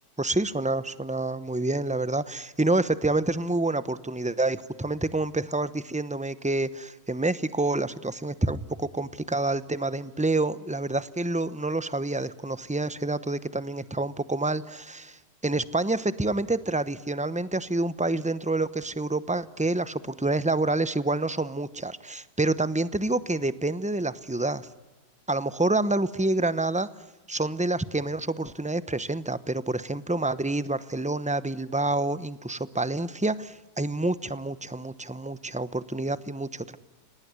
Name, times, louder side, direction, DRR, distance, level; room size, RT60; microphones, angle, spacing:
voice 1, 0.2-24.7 25.3-26.9 27.3-36.8, right 2 dB, 10° right, 15 dB, 0.5 m, -28 dB
29.5 x 18.5 x 9.7 m, 1.1 s
omnidirectional pair, 1.7 m